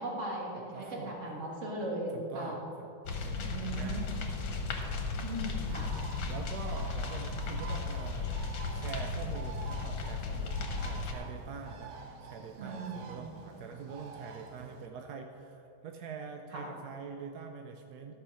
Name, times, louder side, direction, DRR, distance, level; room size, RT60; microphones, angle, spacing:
voice 1, 0.0-2.6 3.3-4.1 5.1-5.9 12.6-13.2 16.5-16.7 18.1-18.2, right 1 dB, 40° right, -2 dB, 2.0 m, -38 dB
voice 2, 0.7-1.1 2.1-4.4 4.8-4.9 6.2-8.4 8.7-11.9 12.2-18.1, right 5 dB, 70° right, 4 dB, 0.9 m, -45 dB
sound 1, 3.1-11.1, left 4 dB, 70° left, 1.8 m, -35 dB
Bird, 5.6-14.9, right 5 dB, 90° right, 1.7 m, -48 dB
13.0 x 5.6 x 6.4 m, 3.0 s
omnidirectional pair, 2.2 m